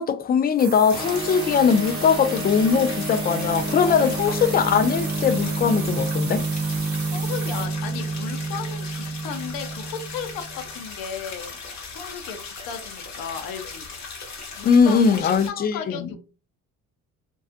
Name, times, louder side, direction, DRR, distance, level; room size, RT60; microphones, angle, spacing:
voice 1, 0.0-6.4 14.6-16.1, left 6 dB, 30° left, 0.3 m, -20 dB
sound 1, 0.6-7.7, right 8 dB, 45° right, 0.4 m, -37 dB
sound 2, 0.9-15.5, left 4 dB, 55° left, 1.0 m, -38 dB
sound 3, 0.9-10.7, right 2 dB, 15° right, 0.8 m, -29 dB
voice 2, 3.9-4.4 7.0-11.6 11.9-13.9 14.6-16.2, left 7 dB, 85° left, 0.6 m, -35 dB
2.4 x 2.3 x 2.4 m
cardioid pair, 85°, 33 cm